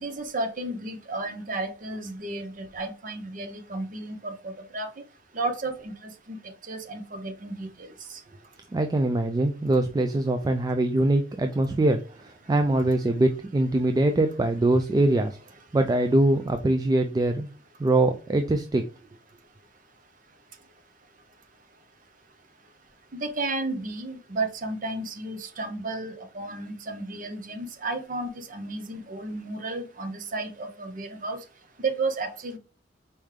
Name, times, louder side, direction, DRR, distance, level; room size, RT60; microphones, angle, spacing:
voice 1, 0.0-4.9 5.3-6.4 6.7-7.9 23.1-31.4 31.8-32.6, right 2 dB, 45° right, 7 dB, 0.8 m, -33 dB
voice 2, 8.7-15.4 15.7-17.5 17.8-18.9, right 2 dB, 20° right, 7 dB, 0.3 m, -23 dB
4.3 x 3.3 x 3.6 m, 0.37 s
head